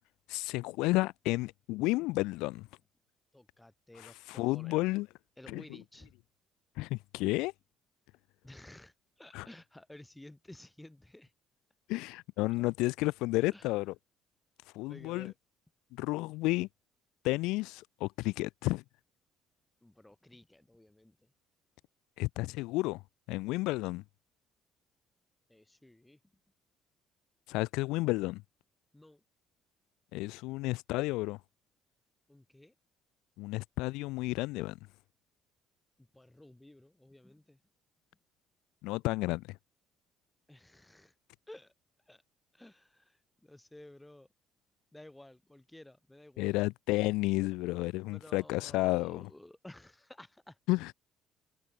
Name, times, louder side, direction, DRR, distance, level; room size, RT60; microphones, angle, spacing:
voice 1, 0.3-2.7 4.0-5.1 5.5-5.8 6.8-7.5 9.3-9.5 11.9-13.9 14.7-15.3 15.9-16.7 17.2-18.8 22.2-23.0 23.3-24.0 27.5-28.4 30.1-31.4 33.4-34.8 38.8-39.6 46.4-49.3 50.7-50.9, left 21 dB, 80° left, 0.5 m, -32 dB
voice 2, 3.3-4.8 5.4-6.1 8.4-11.3 13.5-13.7 14.9-15.3 19.8-21.2 25.5-26.2 28.9-29.2 32.3-32.7 36.0-37.6 40.5-41.1 41.5-41.7 42.1-42.2 42.5-44.3 44.9-46.5 48.1-50.6, left 1 dB, 10° left, 6.1 m, -54 dB
hypercardioid pair, 60°, 0 cm